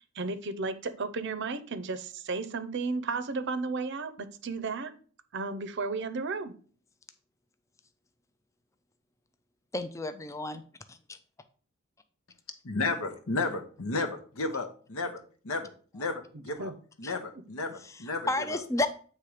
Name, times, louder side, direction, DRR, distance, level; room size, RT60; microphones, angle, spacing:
voice 1, 0.0-4.9 5.3-6.5 16.6-16.7, right 4 dB, 55° right, 11 dB, 0.6 m, -33 dB
voice 2, 9.7-10.6 10.9-11.2 17.0-17.1 17.8-18.9, left 2 dB, 15° left, 9 dB, 0.4 m, -32 dB
voice 3, 12.6-16.7 17.0-18.3, left 3 dB, 80° left, 7 dB, 1.0 m, -33 dB
8.5 x 3.2 x 4.9 m, 0.43 s
head